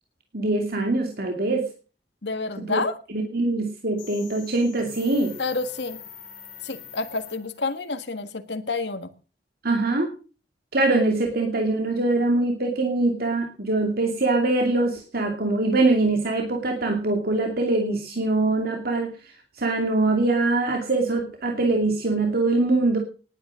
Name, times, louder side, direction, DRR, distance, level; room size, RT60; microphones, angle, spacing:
voice 1, 0.3-1.7 2.6-2.8 3.1-5.3 9.6-10.1 10.7-23.0, right 2 dB, 60° right, 3 dB, 2.6 m, -23 dB
voice 2, 2.2-2.9 5.4-6.0 6.6-9.1, left 3 dB, 75° left, 9 dB, 1.7 m, -29 dB
sound 1, 4.0-7.8, left 9 dB, 50° left, 6.9 m, -44 dB
19.0 x 9.5 x 6.3 m, 0.38 s
head